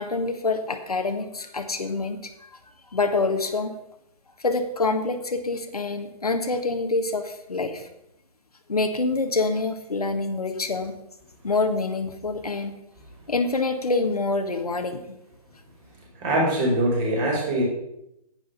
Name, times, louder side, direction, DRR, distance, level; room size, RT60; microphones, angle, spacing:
voice 1, 0.0-2.6 2.9-3.7 4.4-7.9 8.7-11.0 11.4-12.8 13.3-15.2, left 3 dB, 85° left, 6 dB, 1.6 m, -26 dB
voice 2, 16.1-17.6, right 1 dB, 30° right, -2 dB, 5.2 m, -23 dB
10.5 x 9.3 x 5.4 m, 0.82 s
figure-of-eight pair, 135°, 19 cm